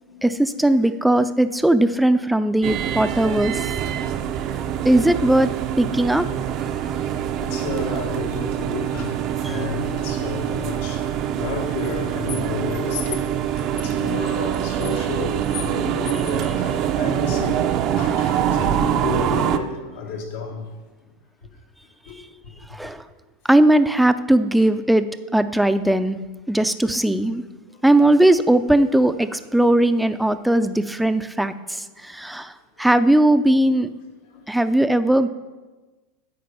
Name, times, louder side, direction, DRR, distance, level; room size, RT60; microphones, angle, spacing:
voice 1, 0.2-3.7 4.8-5.5 5.8-6.3 6.9-7.0 9.4-9.6 22.7-23.0 23.5-25.1 25.3-26.2 26.5-27.4 27.8-32.5 32.8-33.9 34.5-35.3, right 1 dB, 5° right, 0.5 m, -18 dB
sound 1, 2.6-19.6, right 9 dB, 50° right, 0.6 m, -24 dB
voice 2, 6.9-16.5 16.9-17.6 18.5-20.7 21.4-21.5 22.1-22.5 27.1-27.2 27.7-27.8 34.3-34.6, left 5 dB, 80° left, 2.0 m, -32 dB
sound 2, 8.9-10.8 11.8-16.9 18.0-18.6, left 9 dB, 60° left, 3.2 m, -39 dB
9.6 x 7.7 x 5.6 m
supercardioid pair, 115°, 0 cm